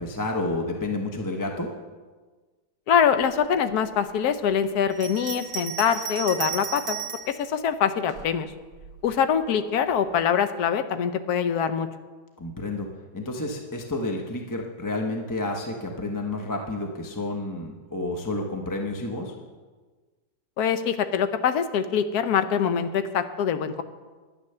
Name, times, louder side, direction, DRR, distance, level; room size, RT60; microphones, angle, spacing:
voice 1, 0.0-1.7 12.4-12.9 13.1-19.3, left 2 dB, 15° left, 2 dB, 0.7 m, -30 dB
voice 2, 2.9-7.0 7.4-8.5 9.0-11.9 20.6-23.8, left 7 dB, 65° left, 10 dB, 1.2 m, -24 dB
Bell, 4.9-7.4 8.1-9.0, right 7 dB, 50° right, 1.6 m, -34 dB
11.0 x 9.9 x 6.7 m, 1.3 s
omnidirectional pair, 2.0 m